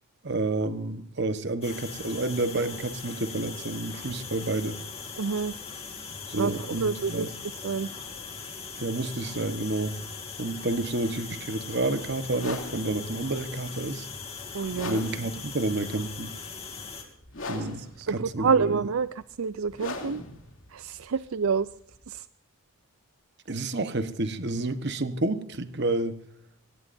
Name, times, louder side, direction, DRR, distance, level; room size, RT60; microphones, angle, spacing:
voice 1, 0.2-4.8 6.3-7.3 8.8-10.0 10.4-14.1 14.8-16.3 17.4-18.8 23.5-26.2, right 2 dB, 55° right, 1.2 m, -30 dB
sound 1, 1.6-17.0, left 5 dB, 30° left, 3.0 m, -40 dB
voice 2, 5.2-5.5 6.4-6.5 6.8-7.3 7.6-7.9 14.5-15.0 18.0-19.1 19.4-20.2 20.7-21.7 22.1-22.2, right 5 dB, 80° right, 0.5 m, -27 dB
sound 2, 12.3-22.2, left 2 dB, 65° left, 2.9 m, -41 dB
23.0 x 18.5 x 2.7 m
head